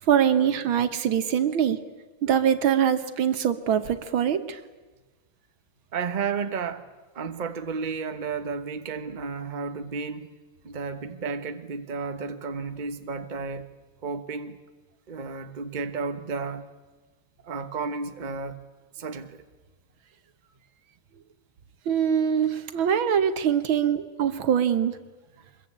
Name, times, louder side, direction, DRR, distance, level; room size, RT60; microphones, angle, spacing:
voice 1, 0.0-1.8 2.2-4.6 21.9-24.9, right 8 dB, 70° right, 1.9 m, -23 dB
voice 2, 5.9-6.9 7.1-10.3 10.6-13.7 14.0-14.6 15.1-16.7 17.4-18.6 18.9-19.4, right 5 dB, 30° right, 1.0 m, -32 dB
24.5 x 22.0 x 8.7 m
omnidirectional pair, 2.4 m